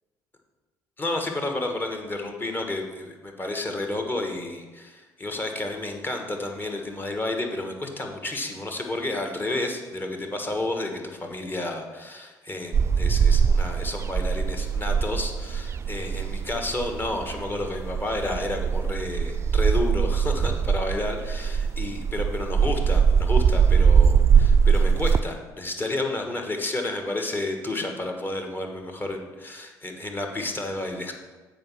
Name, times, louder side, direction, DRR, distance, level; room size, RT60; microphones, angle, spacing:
voice 1, 1.0-31.1, left 2 dB, 25° left, 3 dB, 1.5 m, -31 dB
sound 1, 12.7-25.2, right 6 dB, 35° right, 0.4 m, -22 dB
7.6 x 5.1 x 6.2 m, 1.3 s
supercardioid pair, 70°, 8 cm